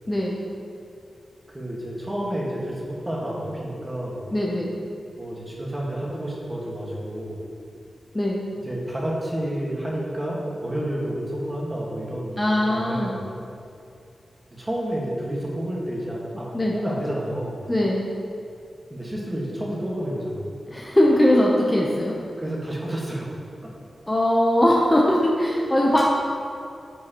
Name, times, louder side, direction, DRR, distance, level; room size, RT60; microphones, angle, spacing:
voice 1, 0.1-0.4 4.3-4.7 8.1-8.5 12.4-13.2 16.5-16.7 17.7-18.0 20.7-22.2 24.1-26.0, left 1 dB, 15° left, -3 dB, 0.7 m, -20 dB
voice 2, 1.5-4.3 5.2-7.5 8.6-13.2 14.5-17.6 18.9-20.4 22.4-23.3 23.6-23.7, right 1 dB, 15° right, -4 dB, 1.6 m, -30 dB
9.5 x 7.6 x 3.0 m, 2.5 s
wide cardioid pair, 130°, 0 cm